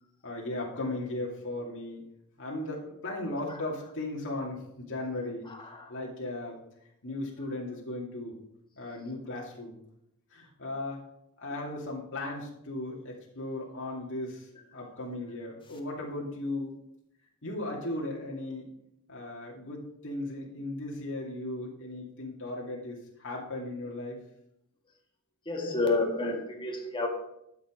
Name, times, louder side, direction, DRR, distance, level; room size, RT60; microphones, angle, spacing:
voice 1, 0.2-2.0 2.4-5.5 5.9-6.6 7.0-8.3 8.8-9.8 10.3-11.0 11.4-16.7 17.4-18.7 19.1-24.2, left 2 dB, 60° left, -3 dB, 2.4 m, -36 dB
voice 2, 25.5-27.1, left 3 dB, 25° left, 2 dB, 1.8 m, -29 dB
12.0 x 7.1 x 5.0 m, 0.78 s
head